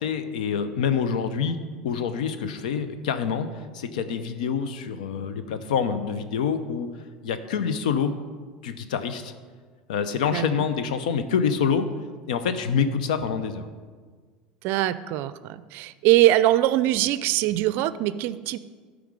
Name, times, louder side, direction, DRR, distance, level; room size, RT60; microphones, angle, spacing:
voice 1, 0.0-1.6 1.8-6.9 7.2-8.1 8.6-9.3 9.9-11.9 12.3-13.7, left 6 dB, 80° left, 10 dB, 0.7 m, -26 dB
voice 2, 10.3-10.7 14.6-18.6, right 15 dB, 60° right, 15 dB, 0.4 m, -22 dB
12.5 x 4.9 x 4.9 m, 1.5 s
hypercardioid pair, 85°, 4 cm